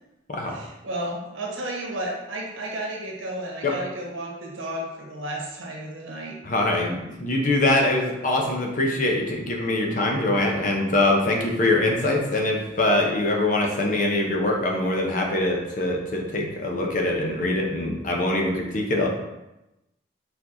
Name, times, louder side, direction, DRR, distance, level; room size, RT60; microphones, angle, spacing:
voice 1, 0.5-6.4, right 1 dB, 85° right, -2 dB, 1.1 m, -33 dB
voice 2, 6.4-19.1, left 2 dB, 40° left, 0 dB, 0.7 m, -23 dB
4.3 x 4.2 x 2.6 m, 0.94 s
head